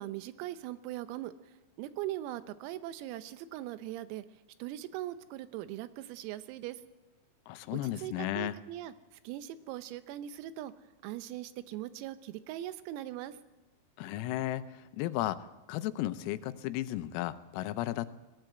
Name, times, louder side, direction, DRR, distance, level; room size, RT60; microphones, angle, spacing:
voice 1, 0.0-1.3 1.8-4.3 4.6-6.8 7.7-8.9 9.3-10.7 11.0-13.4, right 13 dB, 90° right, 12 dB, 3.6 m, -40 dB
voice 2, 7.5-8.6 14.0-18.1, left 14 dB, 85° left, 12 dB, 3.5 m, -34 dB
21.0 x 15.5 x 7.9 m, 1.1 s
omnidirectional pair, 6.0 m